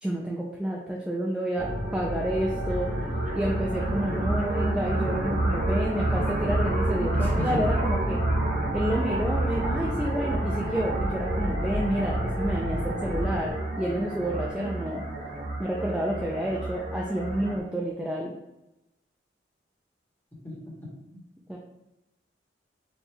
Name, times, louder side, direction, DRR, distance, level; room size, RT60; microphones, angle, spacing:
voice 1, 0.0-2.9 3.3-8.2 8.7-15.1 15.6-18.3 21.5-21.6, right 1 dB, 5° right, -2 dB, 0.3 m, -29 dB
sound 1, 1.6-13.5, equal, 85° right, 0.9 m, -32 dB
sound 2, 2.0-17.6, right 2 dB, 45° right, 0.8 m, -30 dB
voice 2, 7.2-7.6 20.4-20.6 20.8-21.2, left 1 dB, 10° left, -5 dB, 1.1 m, -34 dB
4.3 x 2.3 x 3.4 m, 0.95 s
head